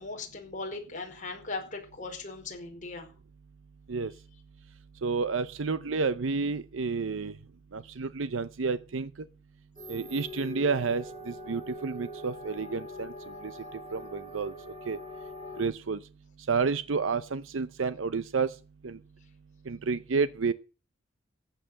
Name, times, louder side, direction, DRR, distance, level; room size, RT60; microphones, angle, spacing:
voice 1, 0.0-3.1, left 3 dB, 40° left, 4.8 m, -38 dB
voice 2, 5.0-7.4 7.7-9.1 9.9-13.1 13.4-14.5 14.9-15.0 15.6-16.0 16.5-18.5 18.8-19.0 19.7-20.5, right 4 dB, 85° right, 0.7 m, -30 dB
sound 1, 9.8-15.7, left 1 dB, 30° right, 5.8 m, -43 dB
14.5 x 9.0 x 6.7 m
head